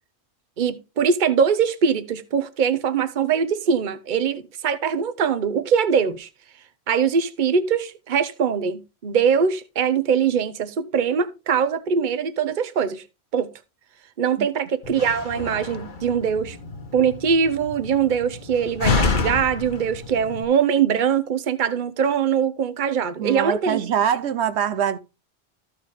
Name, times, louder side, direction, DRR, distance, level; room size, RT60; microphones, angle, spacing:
voice 1, 0.6-6.3 6.9-13.0 13.3-13.5 14.2-16.6 16.9-23.8, right 7 dB, 50° right, 0.9 m, -22 dB
Slam, 14.8-20.4, left 4 dB, 50° left, 1.2 m, -28 dB
voice 2, 23.2-25.0, right 8 dB, 80° right, 1.0 m, -23 dB
14.0 x 4.9 x 3.4 m
omnidirectional pair, 1.1 m